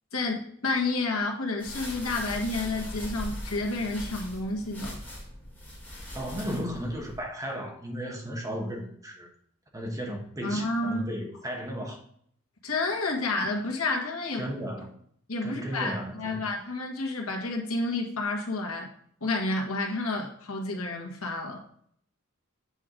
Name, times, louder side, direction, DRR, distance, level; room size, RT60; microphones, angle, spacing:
voice 1, 0.1-5.0 10.4-11.0 12.6-14.4 15.3-18.9 19.2-21.6, left 2 dB, 85° left, 1.6 m, -30 dB
sound 1, 1.6-7.2, left 1 dB, 10° left, 2.9 m, -40 dB
voice 2, 6.1-9.3 9.7-12.0 14.3-15.0 15.4-16.5, equal, 15° right, 1.2 m, -35 dB
8.2 x 4.7 x 3.8 m
head